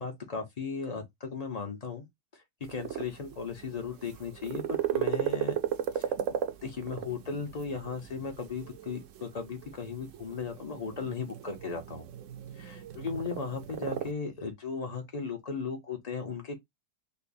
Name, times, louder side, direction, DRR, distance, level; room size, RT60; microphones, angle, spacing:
voice 1, 0.0-2.1 2.7-5.6 5.9-12.1 12.6-16.6, left 5 dB, 50° left, 0.4 m, -36 dB
sound 1, 2.6-14.1, right 10 dB, 70° right, 0.7 m, -36 dB
5.3 x 2.0 x 2.6 m
omnidirectional pair, 1.9 m